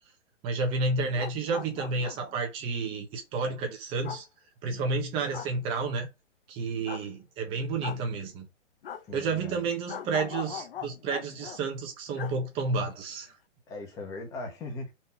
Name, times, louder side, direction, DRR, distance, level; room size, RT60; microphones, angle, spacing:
voice 1, 0.4-4.2 4.6-6.1 6.5-8.5 9.1-13.3, right 3 dB, 15° right, 1.2 m, -31 dB
sound 1, 1.0-2.4 4.0-4.2 5.3-5.5 6.9-7.1 7.8-8.0 8.8-9.0 9.9-11.6 12.1-12.4 12.6-12.7, left 9 dB, 50° left, 0.9 m, -40 dB
voice 2, 9.1-9.6 13.7-14.9, left 3 dB, 10° left, 1.4 m, -39 dB
5.2 x 4.4 x 5.9 m
hypercardioid pair, 170°, 37 cm